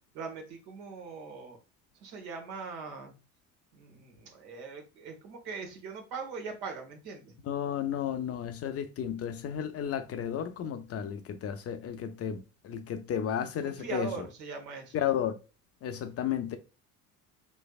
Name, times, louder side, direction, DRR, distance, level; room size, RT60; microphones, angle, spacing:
voice 1, 0.1-1.6 1.9-3.1 3.7-7.3 13.6-14.9, right 5 dB, 65° right, 1.3 m, -41 dB
voice 2, 7.5-14.1 14.9-15.3 15.8-16.6, left 9 dB, 35° left, 0.5 m, -33 dB
3.2 x 3.2 x 2.4 m
hypercardioid pair, 70°, 42 cm